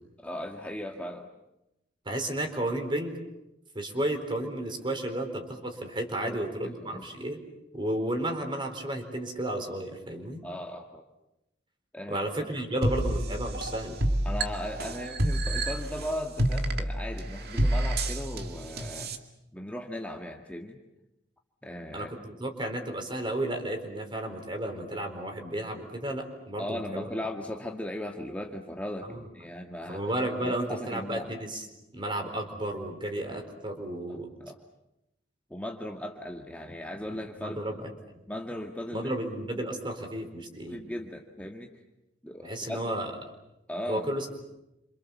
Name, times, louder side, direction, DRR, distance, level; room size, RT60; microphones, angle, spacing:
voice 1, 0.2-1.3 2.1-2.2 6.2-7.1 10.4-11.0 11.9-12.3 14.2-19.1 19.5-20.8 21.6-22.1 26.6-30.0 30.4-31.3 34.1-34.6 35.5-37.7 38.3-39.1 40.7-41.7 42.2-42.8 43.7-44.1, left 1 dB, 10° left, 1 dB, 1.7 m, -37 dB
voice 2, 2.0-3.2 3.7-7.4 7.7-10.4 12.1-14.0 21.9-27.1 29.0-29.2 29.9-31.7 31.9-34.3 37.4-37.9 38.9-40.8 42.4-43.1 43.9-44.4, right 1 dB, 25° right, 5 dB, 4.4 m, -33 dB
sound 1, 12.8-19.2, right 1 dB, 55° right, 2.3 m, -29 dB
28.5 x 27.0 x 7.2 m, 0.92 s
head